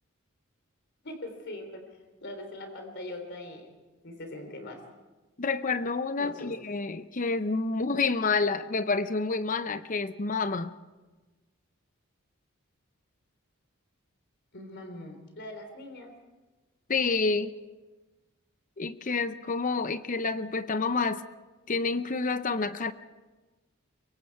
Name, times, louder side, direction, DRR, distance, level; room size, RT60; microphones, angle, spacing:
voice 1, 1.0-1.8 2.2-3.7 4.0-4.8 6.2-6.5 14.5-16.1, left 1 dB, 55° left, 3.5 m, -41 dB
voice 2, 5.4-10.7 16.9-17.5 18.8-21.2 21.7-22.9, left 4 dB, 40° left, 0.7 m, -28 dB
24.0 x 23.0 x 4.7 m
head